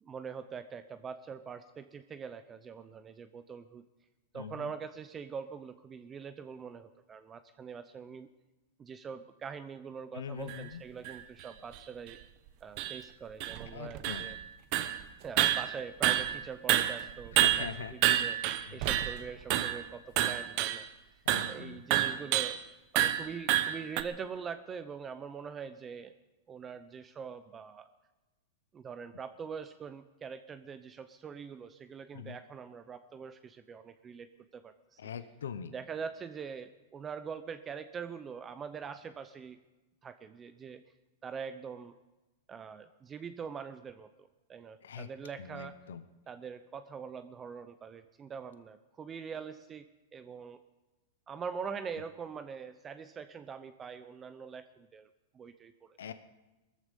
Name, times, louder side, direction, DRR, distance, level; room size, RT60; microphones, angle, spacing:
voice 1, 0.0-3.8 4.3-8.3 8.8-12.2 12.6-14.4 15.2-20.8 21.5-22.6 22.9-26.1 26.5-27.9 28.7-35.0 35.7-39.6 40.0-40.8 41.2-42.0 42.5-45.8 46.3-50.6 51.3-55.1 55.3-56.0, right 6 dB, 20° right, 11 dB, 0.7 m, -43 dB
voice 2, 4.3-4.7 10.1-10.8 13.7-14.3 17.4-18.3 18.7-19.0 21.3-21.8 32.1-32.4 35.0-35.7 44.8-45.1 45.4-46.0 56.0-56.1, left 7 dB, 90° left, 11 dB, 0.9 m, -42 dB
sound 1, 10.5-10.6 11.0-11.2 11.7-11.8 12.1-12.2 12.8-13.0 13.4-14.5 14.7-15.0 15.4-16.4 16.7-19.2 19.5-19.9 20.2-20.9 21.3-21.6 21.9-22.6 23.0-24.0, right 13 dB, 50° right, 1.0 m, -29 dB
19.0 x 14.0 x 5.4 m, 1.1 s
hypercardioid pair, 135°, 0 cm